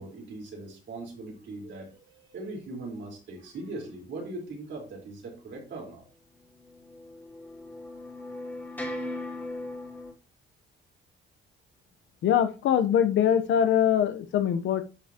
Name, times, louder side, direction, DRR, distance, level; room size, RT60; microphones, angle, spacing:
voice 1, 0.0-6.0, right 2 dB, 65° right, 4.0 m, -40 dB
sound 1, 6.5-10.1, left 1 dB, 10° left, 2.6 m, -38 dB
voice 2, 12.2-14.8, left 9 dB, 75° left, 0.8 m, -23 dB
10.0 x 5.6 x 2.9 m
cardioid pair, 90°, 20 cm